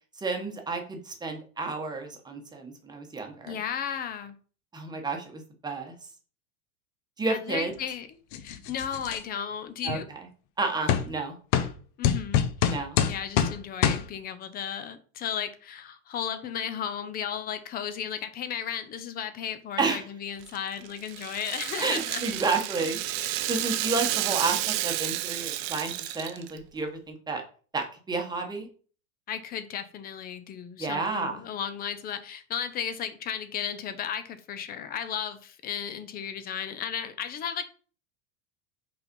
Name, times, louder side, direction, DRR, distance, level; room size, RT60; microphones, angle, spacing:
voice 1, 0.2-3.6 4.7-5.9 7.2-7.7 9.8-10.2 10.6-11.4 12.7-13.0 19.8-20.1 21.8-23.0 23.5-27.4 27.7-28.7 30.8-31.4, right 3 dB, 10° right, 3 dB, 1.1 m, -31 dB
voice 2, 3.5-4.3 7.3-10.1 12.0-12.7 13.1-22.2 23.2-23.5 29.3-37.6, left 8 dB, 25° left, 10 dB, 0.6 m, -35 dB
sound 1, 8.3-9.2 9.9-10.0 10.9-11.0 11.5-11.7 12.0-13.5 13.8-14.0, left 9 dB, 50° left, 0.8 m, -24 dB
Rattle (instrument), 20.4-26.6, right 14 dB, 45° right, 0.7 m, -31 dB
5.5 x 4.1 x 5.2 m, 0.41 s
supercardioid pair, 145°, 40 cm